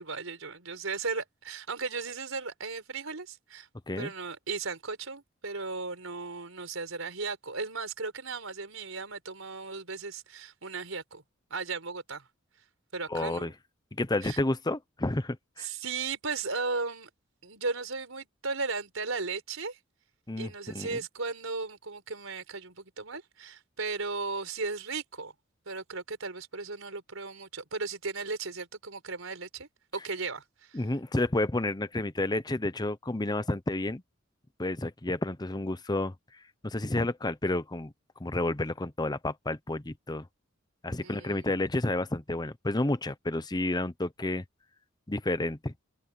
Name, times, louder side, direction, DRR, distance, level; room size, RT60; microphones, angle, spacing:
voice 1, 0.0-3.7 4.0-11.2 11.5-12.3 12.9-13.5 14.2-14.4 15.6-17.1 17.4-19.8 20.4-25.3 25.7-30.8 41.0-41.5, right 4 dB, 85° right, 4.3 m, -36 dB
voice 2, 13.1-13.5 13.9-15.7 20.3-21.0 30.7-34.0 34.6-36.1 36.6-37.9 38.2-40.2 40.8-44.4 45.1-45.7, left 2 dB, 20° left, 0.9 m, -30 dB
head